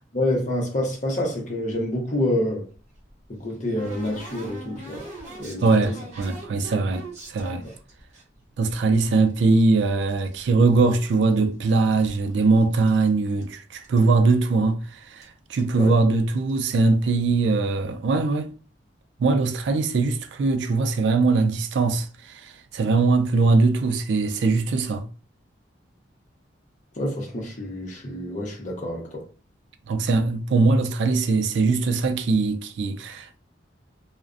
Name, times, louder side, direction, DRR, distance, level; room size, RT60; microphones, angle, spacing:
voice 1, 0.1-2.7 3.3-5.1 5.4-6.0 6.5-6.6 15.8-16.0 26.9-29.3, left 1 dB, 40° left, 0.6 m, -27 dB
sound 1, 2.7-8.2 8.7-10.5 10.7-11.5 11.7-13.1 13.4-13.5 13.7-14.0 14.3-14.4 15.2-15.3 15.6-15.8 16.4-16.7, right 2 dB, 35° right, 0.8 m, -42 dB
voice 2, 5.6-7.6 8.6-18.5 19.2-25.1 29.9-33.4, right 3 dB, 65° right, 0.3 m, -21 dB
2.4 x 2.1 x 2.4 m
head